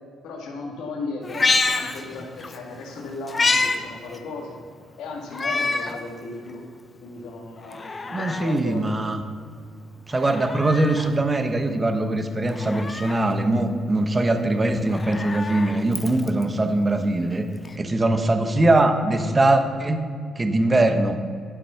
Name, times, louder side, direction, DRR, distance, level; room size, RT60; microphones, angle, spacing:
voice 1, 0.2-4.6 5.0-6.6 7.0-8.9, left 3 dB, 85° left, 1 dB, 2.1 m, -36 dB
Meow, 1.2-2.6 2.9-3.8 4.1-4.2 5.3-6.0 6.5-6.6 7.6-8.6 10.1-11.1 12.5-13.3 14.8-16.4 17.7-17.8, left 3 dB, 30° left, 0.8 m, -27 dB
voice 2, 8.1-9.2 10.1-17.5 17.8-20.0 20.3-21.2, right 2 dB, 25° right, 7 dB, 1.1 m, -21 dB
12.0 x 7.5 x 5.7 m, 2.2 s
cardioid pair, 90°, 0 cm